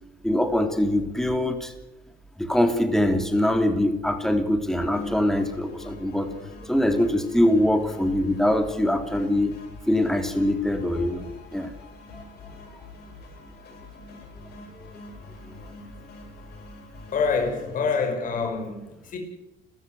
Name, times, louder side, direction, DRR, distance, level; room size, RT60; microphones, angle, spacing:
voice 1, 0.2-1.7 2.4-9.6 9.9-11.3 11.5-11.7 12.1-12.3 14.7-14.9, left 1 dB, 5° left, 3.2 m, -23 dB
sound 1, 4.8-17.8, left 2 dB, 70° left, 7.3 m, -45 dB
voice 2, 17.1-19.2, left 5 dB, 55° left, 5.5 m, -26 dB
30.0 x 14.5 x 7.8 m
cardioid pair, 110°, 17 cm